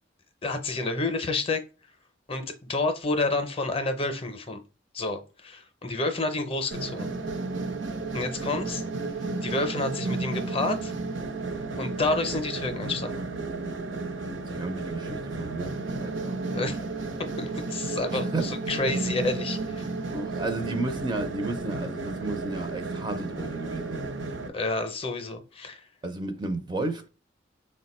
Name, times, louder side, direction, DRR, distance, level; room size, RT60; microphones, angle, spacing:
voice 1, 0.4-1.6 2.3-2.4 2.7-4.6 4.9-7.1 8.1-8.8 9.4-10.9 11.8-13.2 16.5-16.8 17.4-19.9 24.4-25.8, left 2 dB, 30° left, 0.5 m, -29 dB
sound 1, 6.7-24.5, right 3 dB, 80° right, 0.7 m, -33 dB
voice 2, 14.4-16.4 18.1-18.5 20.1-24.2 26.0-27.1, right 2 dB, 25° right, 0.4 m, -33 dB
4.6 x 2.1 x 4.1 m
head